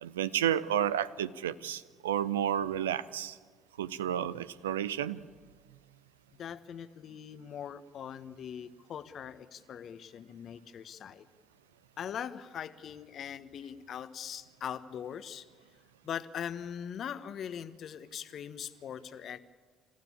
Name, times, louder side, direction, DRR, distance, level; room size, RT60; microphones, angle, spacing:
voice 1, 0.0-3.4 3.8-5.2, right 10 dB, 85° right, 16 dB, 0.6 m, -31 dB
voice 2, 6.4-11.3 12.0-15.4 16.0-19.4, left 8 dB, 55° left, 12 dB, 1.2 m, -41 dB
28.0 x 15.0 x 8.6 m, 1.5 s
hypercardioid pair, 55°, 0 cm